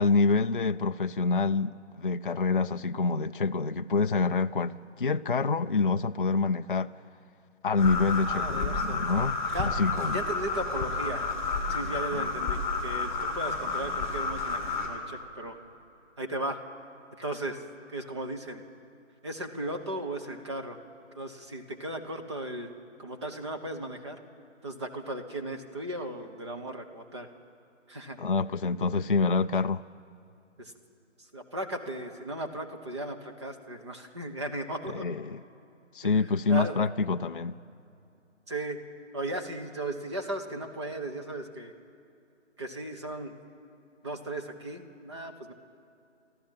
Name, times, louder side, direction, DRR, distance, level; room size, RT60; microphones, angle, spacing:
voice 1, 0.0-6.9 7.6-10.2 28.2-29.8 34.9-35.4 35.9-37.5, left 4 dB, 45° left, 0.4 m, -27 dB
sound 1, 7.8-14.9, left 4 dB, 5° left, 1.9 m, -31 dB
voice 2, 8.2-9.0 9.5-9.8 10.0-11.3 11.7-15.6 16.2-16.6 17.1-18.6 19.2-20.8 21.1-22.7 23.0-24.2 24.6-27.3 27.9-28.2 30.6-30.7 31.2-35.1 36.0-36.8 38.5-38.8 39.1-41.7 42.6-43.3 44.0-45.5, right 1 dB, 20° right, 1.2 m, -36 dB
30.0 x 13.5 x 7.4 m
figure-of-eight pair, 170°, 37 cm